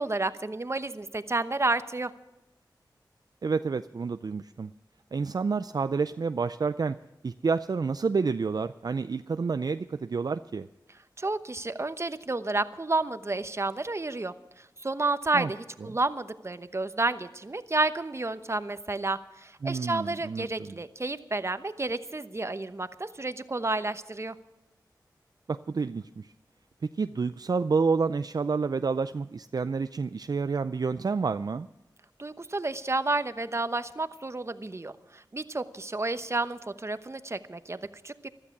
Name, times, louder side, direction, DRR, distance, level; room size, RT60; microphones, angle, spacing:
voice 1, 0.0-2.1 11.2-24.3 32.2-38.3, right 2 dB, 35° right, 11 dB, 0.9 m, -31 dB
voice 2, 3.4-4.7 5.1-7.0 7.2-10.7 15.3-15.5 15.9-16.0 19.6-20.8 25.5-26.3 26.9-31.7, right 4 dB, 55° right, 11 dB, 0.4 m, -29 dB
15.0 x 12.5 x 6.0 m, 0.97 s
cardioid pair, 45°, 8 cm